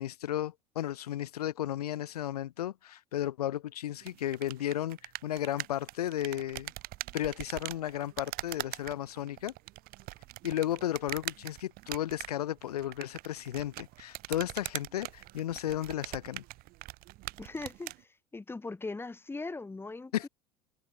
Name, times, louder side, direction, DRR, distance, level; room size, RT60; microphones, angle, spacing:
voice 1, 0.0-6.7 7.1-9.5 10.4-16.4 20.1-20.3, left 12 dB, 85° left, 0.4 m, -34 dB
sound 1, 4.0-18.0, right 19 dB, 50° right, 0.7 m, -42 dB
voice 2, 17.4-20.3, left 3 dB, 10° left, 1.1 m, -40 dB
hypercardioid pair, 75°, 19 cm